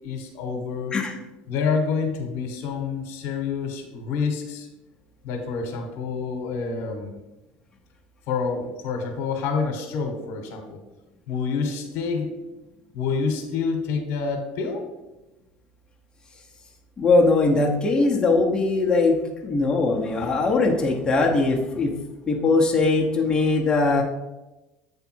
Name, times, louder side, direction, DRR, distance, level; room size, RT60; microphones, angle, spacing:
voice 1, 0.0-0.9 1.5-4.7 5.2-7.1 8.3-10.8 11.3-12.3 12.9-14.9, left 5 dB, 70° left, 4 dB, 1.2 m, -27 dB
voice 2, 17.0-22.0 22.3-24.0, left 3 dB, 20° left, -2 dB, 1.0 m, -21 dB
8.1 x 3.4 x 4.5 m, 1.0 s
supercardioid pair, 115°, 4 cm